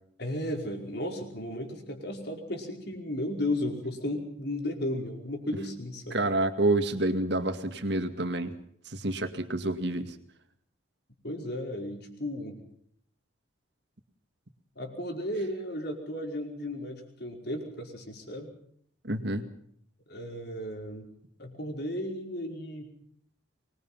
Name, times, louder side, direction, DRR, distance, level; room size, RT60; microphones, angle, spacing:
voice 1, 0.2-6.2 11.2-12.6 14.7-18.5 20.1-21.1 21.4-22.9, left 1 dB, 55° left, 3 dB, 5.0 m, -34 dB
voice 2, 6.1-8.5 8.9-10.1 19.0-19.4, right 2 dB, 55° right, 8 dB, 2.2 m, -28 dB
24.5 x 21.5 x 5.7 m, 0.65 s
head